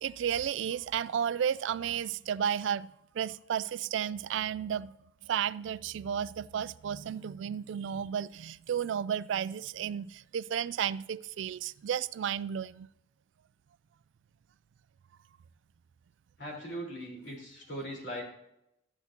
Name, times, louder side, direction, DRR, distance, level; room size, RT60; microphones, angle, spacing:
voice 1, 0.0-4.9 5.2-12.9, right 8 dB, 70° right, 0.3 m, -33 dB
voice 2, 16.4-18.2, equal, 65° left, 4.1 m, -39 dB
12.5 x 8.2 x 2.9 m
head